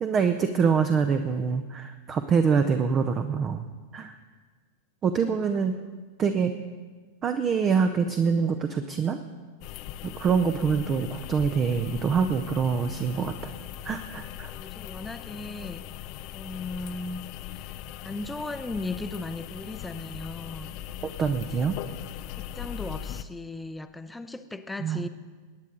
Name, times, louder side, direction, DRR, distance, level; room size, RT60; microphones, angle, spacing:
voice 1, 0.0-3.6 3.9-4.1 5.0-5.7 6.2-6.5 7.2-9.2 10.0-13.5 13.8-14.5 21.0-21.8 24.8-25.1, right 6 dB, 25° right, 8 dB, 0.7 m, -25 dB
voice 2, 5.2-6.0 14.2-15.8 16.3-17.2 18.0-20.8 21.3-21.5 22.4-25.1, left 2 dB, 5° left, 10 dB, 0.7 m, -37 dB
sound 1, 9.6-23.2, left 12 dB, 40° left, 0.5 m, -39 dB
22.5 x 9.4 x 3.9 m, 1.4 s
figure-of-eight pair, 90°, 0 cm